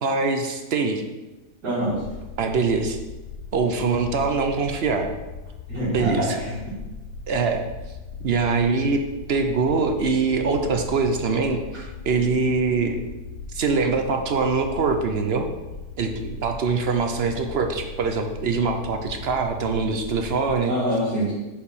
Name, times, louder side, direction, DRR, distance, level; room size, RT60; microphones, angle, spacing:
voice 1, 0.0-1.0 2.4-3.0 3.5-5.1 5.9-6.3 7.3-7.7 8.2-9.0 9.3-13.0 13.5-15.5 16.0-20.7, right 4 dB, 55° right, 5 dB, 0.7 m, -23 dB
voice 2, 1.6-2.0 5.7-6.6 20.7-21.3, equal, 75° right, -10 dB, 2.5 m, -25 dB
sound 1, 1.9-20.6, left 5 dB, 70° left, 1.0 m, -39 dB
6.9 x 4.8 x 5.4 m, 1.1 s
omnidirectional pair, 1.7 m